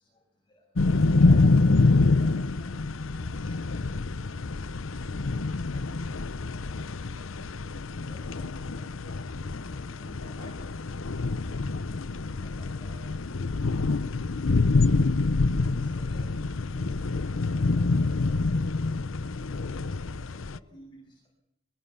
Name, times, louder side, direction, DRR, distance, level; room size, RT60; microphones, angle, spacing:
voice 1, 0.0-4.0 4.9-6.8 8.0-12.0 12.3-15.1 15.6-21.3, left 1 dB, 25° left, 0 dB, 7.1 m, -54 dB
sound 1, 0.8-20.6, left 3 dB, 85° left, 0.8 m, -26 dB
23.0 x 22.0 x 7.1 m, 0.81 s
head